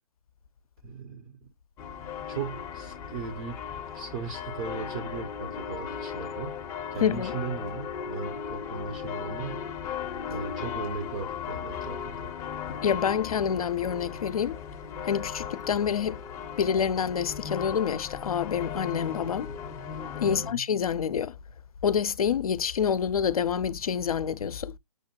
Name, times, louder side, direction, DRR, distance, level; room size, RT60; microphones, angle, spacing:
voice 1, 0.8-1.4 2.3-6.5 6.9-9.7 10.3-12.3 20.2-20.6, right 5 dB, 30° right, 0.6 m, -37 dB
sound 1, 1.8-20.5, left 7 dB, 15° left, 0.5 m, -37 dB
voice 2, 7.0-7.3 12.7-14.6 15.0-16.2 16.6-19.5 20.2-21.4 21.8-24.8, left 7 dB, 80° left, 0.4 m, -27 dB
6.2 x 2.1 x 2.8 m
hypercardioid pair, 135°, 18 cm